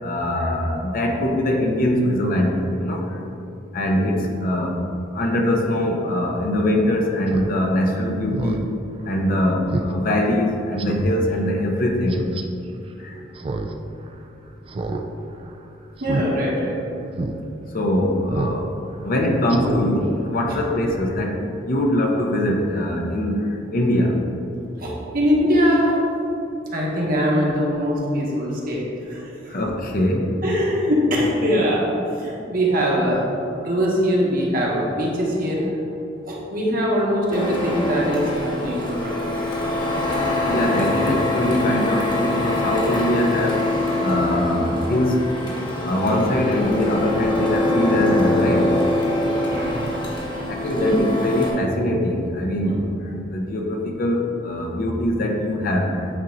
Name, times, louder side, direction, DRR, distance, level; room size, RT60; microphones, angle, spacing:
voice 1, 0.0-3.0 3.7-4.8 5.1-8.6 9.1-12.2 13.0-13.2 17.7-18.7 19.0-21.4 21.6-24.2 29.5-30.3 40.4-43.6 44.0-45.2 45.8-48.7 50.5-52.9 53.3-56.1, left 1 dB, 50° left, 1 dB, 0.7 m, -22 dB
Speech synthesizer, 7.3-7.5 7.9-8.0 8.3-8.7 9.1-9.2 9.7-9.9 10.3-10.4 10.8-11.1 12.1-12.4 13.4-13.7 14.0-14.1 14.7-15.0 15.3-15.6 16.0-16.3 16.7-16.8 17.1-17.4 18.3-18.6 18.9-19.0 19.5-19.8 20.2-20.3, right 2 dB, 30° right, 0.3 m, -28 dB
voice 2, 16.0-16.8 24.8-25.9 26.7-29.3 30.4-33.2 33.6-35.7 36.3-39.5 49.1-49.9 50.3-50.5 50.8-50.9 52.6-52.7, equal, 50° right, -4 dB, 1.2 m, -22 dB
Printer, 37.3-51.5, left 1 dB, 25° left, 1.1 m, -23 dB
8.6 x 2.9 x 3.9 m, 2.7 s
head